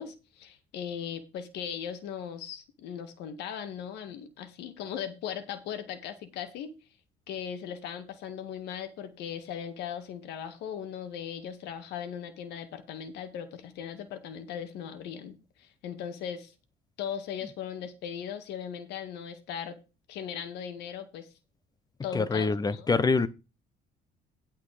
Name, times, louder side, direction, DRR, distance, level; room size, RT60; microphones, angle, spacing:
voice 1, 0.0-6.7 7.3-16.5 17.0-19.8 20.1-21.3 22.0-23.0, left 8 dB, 80° left, 1.9 m, -38 dB
voice 2, 22.1-23.3, left 4 dB, 25° left, 0.9 m, -25 dB
11.0 x 5.7 x 5.0 m
cardioid pair, 110°, 17 cm